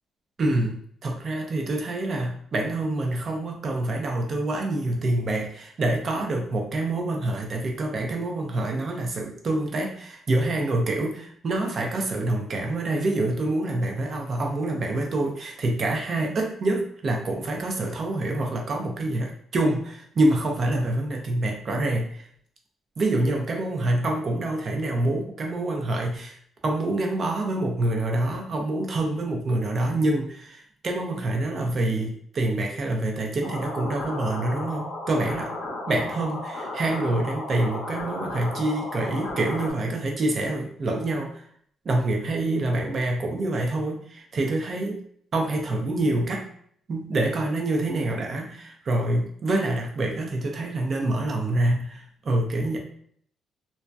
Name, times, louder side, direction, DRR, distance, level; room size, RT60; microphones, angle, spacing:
voice 1, 0.4-22.3 23.0-26.4 26.6-35.5 35.9-41.4 41.8-45.0 45.3-46.5 46.9-52.8, right 2 dB, 50° right, 1 dB, 0.6 m, -26 dB
sound 1, 33.4-39.7, left 2 dB, 65° left, 0.7 m, -34 dB
2.6 x 2.1 x 2.2 m, 0.63 s
cardioid pair, 90°, 0 cm